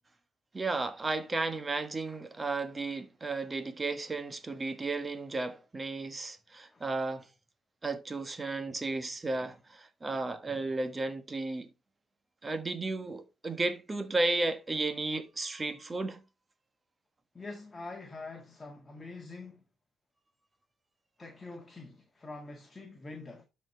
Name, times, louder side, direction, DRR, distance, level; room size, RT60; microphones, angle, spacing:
voice 1, 0.5-7.3 7.8-11.7 12.4-16.2, right 3 dB, 25° right, 1.3 m, -34 dB
voice 2, 17.3-19.6 21.2-23.4, left 3 dB, 20° left, 1.8 m, -45 dB
12.5 x 4.5 x 3.3 m
cardioid pair, 90°, 0 cm